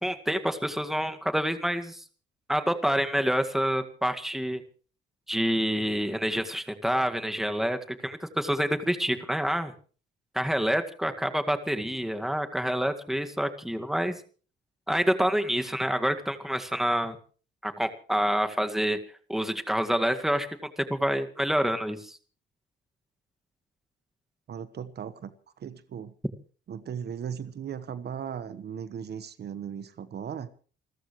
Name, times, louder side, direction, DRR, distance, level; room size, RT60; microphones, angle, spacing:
voice 1, 0.0-2.0 2.5-4.6 5.3-9.7 10.3-14.1 14.9-17.2 17.6-19.0 19.3-20.5 20.8-22.2, equal, ahead, 7 dB, 2.0 m, -27 dB
voice 2, 24.5-26.1 26.7-30.5, right 8 dB, 55° right, 13 dB, 1.2 m, -37 dB
29.0 x 14.0 x 3.2 m, 0.39 s
cardioid pair, 90°, 20 cm